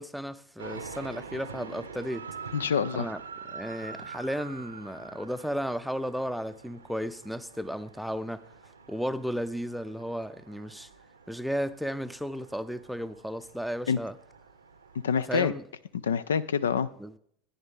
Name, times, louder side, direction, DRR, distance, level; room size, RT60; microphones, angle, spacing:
voice 1, 0.0-2.3 2.9-3.2 3.5-8.5 8.9-10.9 11.3-14.2 15.3-15.6 17.0-17.2, equal, ahead, 0.5 m, -34 dB
sound 1, 0.6-15.3, right 5 dB, 85° right, 0.7 m, -46 dB
voice 2, 2.5-3.1 13.9-14.0 15.0-15.5 15.9-16.9, left 7 dB, 80° left, 0.4 m, -26 dB
14.0 x 9.5 x 3.6 m
figure-of-eight pair, 80°, 0 cm